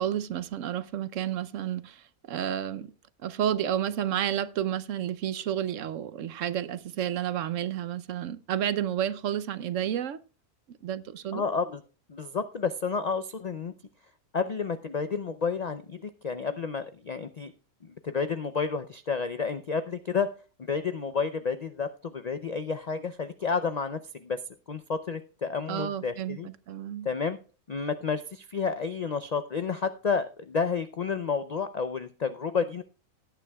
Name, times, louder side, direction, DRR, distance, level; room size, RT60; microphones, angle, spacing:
voice 1, 0.0-2.9 3.2-10.2 10.8-11.4 25.7-27.1, right 10 dB, 70° right, 1.0 m, -31 dB
voice 2, 11.3-11.8 12.1-13.7 14.3-17.5 18.0-20.3 20.7-24.4 24.7-26.5 27.0-27.4 27.7-32.8, left 5 dB, 60° left, 0.4 m, -30 dB
17.5 x 9.2 x 2.3 m
omnidirectional pair, 1.5 m